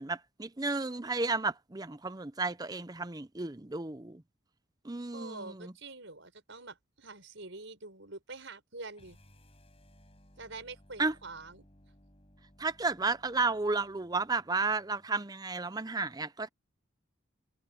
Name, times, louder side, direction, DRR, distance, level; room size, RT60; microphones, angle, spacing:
voice 1, 0.0-4.2 4.8-5.7 11.0-11.1 12.6-16.5, right 3 dB, 20° right, 0.6 m, -33 dB
voice 2, 5.1-9.2 10.4-11.7, right 3 dB, 60° right, 5.8 m, -46 dB
sound 1, 8.9-15.1, equal, 30° left, 5.5 m, -61 dB
head